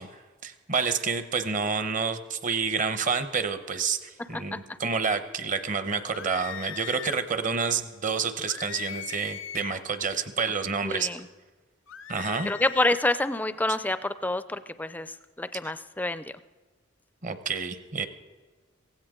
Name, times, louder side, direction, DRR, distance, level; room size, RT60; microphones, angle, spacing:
voice 1, 0.0-11.1 12.1-12.5 17.2-18.1, right 5 dB, 40° right, 11 dB, 0.8 m, -29 dB
sound 1, 6.0-7.2 8.5-9.9 11.9-13.1, left 11 dB, 75° left, 0.5 m, -40 dB
voice 2, 10.8-11.3 12.5-16.3, left 2 dB, 10° left, 13 dB, 0.4 m, -28 dB
17.0 x 16.0 x 3.7 m, 1.3 s
head